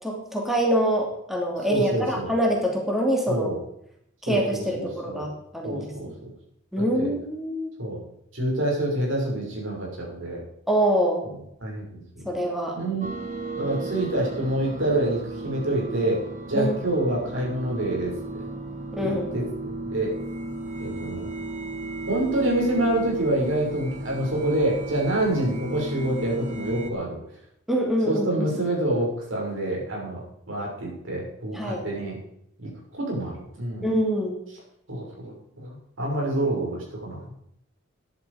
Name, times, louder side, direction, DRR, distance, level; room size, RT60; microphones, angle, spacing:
voice 1, 0.0-3.5 4.2-5.9 6.7-7.7 10.7-11.2 12.2-12.8 16.5-16.8 18.9-19.3 27.7-28.5 31.5-31.8 33.8-34.4, equal, ahead, -1 dB, 2.8 m, -25 dB
voice 2, 1.7-2.3 3.3-3.6 4.3-5.3 5.6-6.3 7.0-7.1 7.8-8.0 8.3-10.4 11.6-12.3 12.7-13.0 13.5-18.5 19.0-19.5 19.8-20.1 20.8-21.3 22.1-27.2 28.0-32.2 32.6-32.7 33.0-33.9 34.9-37.2, right 1 dB, 80° right, -2 dB, 5.9 m, -27 dB
sound 1, 13.0-26.9, right 2 dB, 40° right, 1.7 m, -35 dB
13.5 x 10.5 x 5.0 m, 0.75 s
head